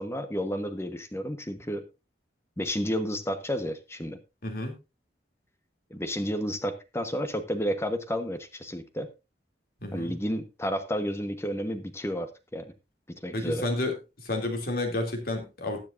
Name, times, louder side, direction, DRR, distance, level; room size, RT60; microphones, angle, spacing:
voice 1, 0.0-1.8 2.6-4.2 5.9-9.1 9.9-12.7 13.2-13.7, equal, 15° left, 9 dB, 1.1 m, -31 dB
voice 2, 4.4-4.7 9.8-10.1 13.3-13.9 14.2-15.8, left 2 dB, 55° left, 3 dB, 2.9 m, -30 dB
20.0 x 7.4 x 2.6 m, 0.26 s
head